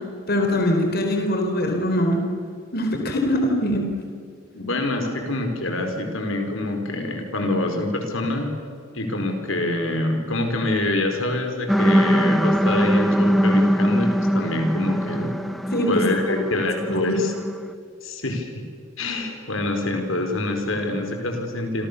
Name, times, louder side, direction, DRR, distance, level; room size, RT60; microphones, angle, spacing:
voice 1, 0.3-2.3 2.7-3.9 15.7-16.0 16.3-16.4 16.9-17.2, left 1 dB, 50° left, 2 dB, 4.1 m, -22 dB
voice 2, 4.5-8.5 8.9-15.3 15.9-17.3 18.0-18.5 19.0-21.9, left 2 dB, 75° left, 4 dB, 4.7 m, -25 dB
sound 1, 11.7-17.7, equal, ahead, 1.0 m, -21 dB
29.5 x 26.5 x 7.0 m, 2.3 s
head